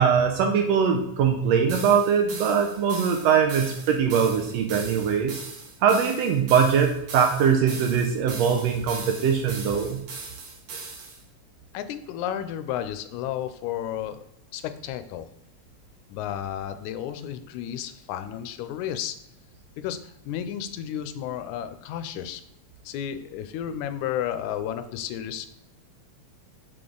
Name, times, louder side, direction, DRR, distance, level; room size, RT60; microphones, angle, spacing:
voice 1, 0.0-5.4 5.8-10.0, right 7 dB, 75° right, 3 dB, 1.6 m, -22 dB
sound 1, 1.7-11.2, right 4 dB, 60° right, 1.7 m, -39 dB
voice 2, 11.7-14.2 14.5-15.3 16.1-19.2 19.8-22.4 22.9-25.5, left 10 dB, 85° left, 10 dB, 1.9 m, -32 dB
6.9 x 3.7 x 3.8 m, 0.80 s
omnidirectional pair, 3.4 m